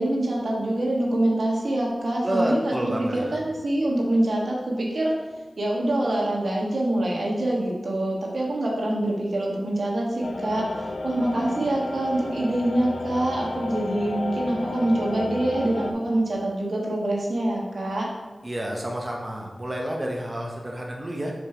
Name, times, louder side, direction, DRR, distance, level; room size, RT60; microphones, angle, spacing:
voice 1, 0.0-5.1 5.6-18.1, right 1 dB, 75° right, -3 dB, 1.4 m, -25 dB
voice 2, 2.2-3.4 18.4-21.3, right 1 dB, 30° right, -1 dB, 0.9 m, -29 dB
sound 1, 10.2-15.9, left 2 dB, 85° left, 0.5 m, -33 dB
5.1 x 4.4 x 4.9 m, 1.2 s
wide cardioid pair, 55°, 0 cm